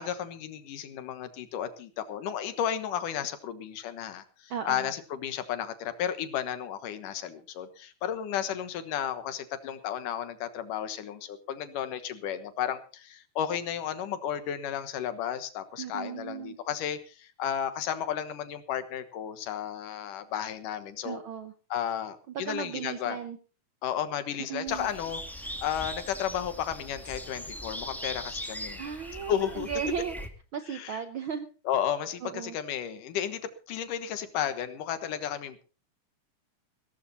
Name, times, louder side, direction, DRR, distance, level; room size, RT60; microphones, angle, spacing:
voice 1, 0.0-21.2 21.7-23.2 23.8-28.8 29.3-29.7 30.7-31.0 31.7-33.4 33.7-35.6, left 9 dB, 90° left, 10 dB, 2.9 m, -33 dB
voice 2, 4.5-4.9 15.8-16.6 21.0-21.5 22.3-23.4 24.4-24.9 28.8-30.2 30.5-31.5 32.2-32.6, right 7 dB, 75° right, 9 dB, 1.1 m, -36 dB
sound 1, 24.7-30.3, equal, ahead, 1.1 m, -40 dB
16.5 x 14.0 x 4.1 m, 0.37 s
omnidirectional pair, 3.6 m